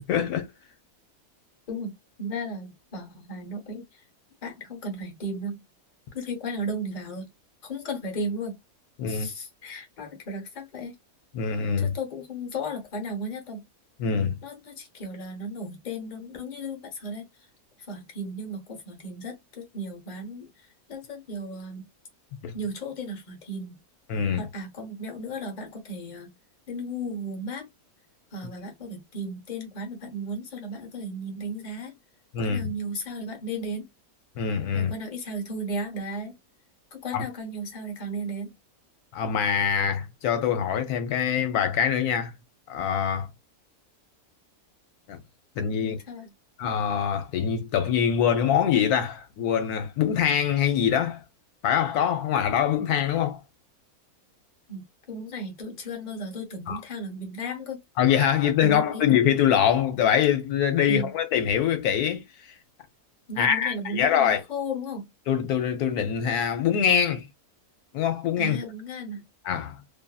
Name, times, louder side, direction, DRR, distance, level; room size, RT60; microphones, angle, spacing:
voice 1, 0.1-0.5 9.0-9.3 11.3-11.9 14.0-14.4 22.4-22.5 24.1-24.5 32.3-32.7 34.4-34.9 37.1-37.2 39.1-42.3 42.7-43.3 45.1-45.2 45.6-46.0 46.6-51.2 51.6-53.4 56.7-56.8 58.0-62.2 63.4-64.4 65.3-67.3 67.9-68.6 69.5-69.8, left 8 dB, 75° left, 1.1 m, -24 dB
voice 2, 2.2-4.0 4.4-5.6 6.1-7.3 7.6-8.6 9.1-10.9 11.8-13.6 14.4-17.3 17.9-20.5 20.9-21.8 22.5-23.8 24.3-26.3 26.7-27.7 28.3-31.9 32.4-33.9 34.7-36.3 36.9-38.5 45.8-46.3 54.7-57.8 58.6-59.0 60.9-61.1 63.3-65.0 68.4-69.2, equal, 35° left, 0.9 m, -35 dB
2.6 x 2.6 x 2.3 m
omnidirectional pair, 1.6 m